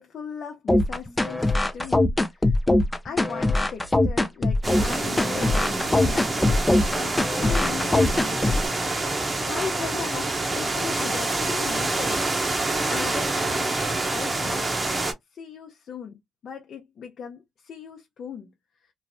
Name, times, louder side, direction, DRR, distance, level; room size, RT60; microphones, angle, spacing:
voice 1, 0.0-2.5 3.0-8.7 9.5-14.7 15.3-18.5, left 6 dB, 60° left, 0.7 m, -38 dB
sound 1, 0.7-8.7, left 2 dB, 15° left, 0.4 m, -22 dB
wind in the trees from cover, 4.6-15.1, right 2 dB, 25° right, 0.8 m, -27 dB
3.1 x 2.0 x 2.6 m
cardioid pair, 90°, 0 cm